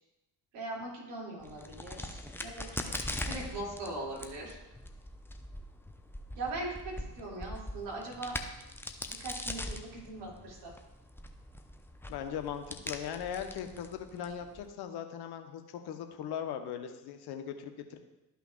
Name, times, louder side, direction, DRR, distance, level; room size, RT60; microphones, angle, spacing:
voice 1, 0.5-2.9 3.2-4.6 6.4-8.4 9.0-10.7, right 2 dB, 60° right, -3 dB, 2.5 m, -40 dB
Crack, 1.4-14.7, left 1 dB, 5° left, 0.6 m, -42 dB
voice 2, 12.1-18.0, left 8 dB, 50° left, 7 dB, 1.0 m, -39 dB
13.0 x 5.7 x 2.3 m, 0.97 s
figure-of-eight pair, 50°, 48 cm